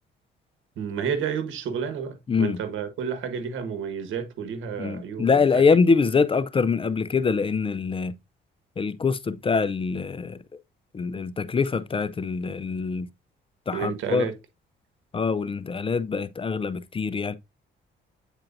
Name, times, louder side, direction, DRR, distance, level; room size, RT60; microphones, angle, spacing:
voice 1, 0.8-5.6 13.7-14.3, right 7 dB, 80° right, 1.4 m, -31 dB
voice 2, 2.3-2.6 4.8-8.2 8.8-10.4 10.9-13.1 13.7-14.3 15.1-17.3, left 5 dB, 25° left, 0.5 m, -24 dB
8.8 x 4.4 x 2.6 m
cardioid pair, 90°, 20 cm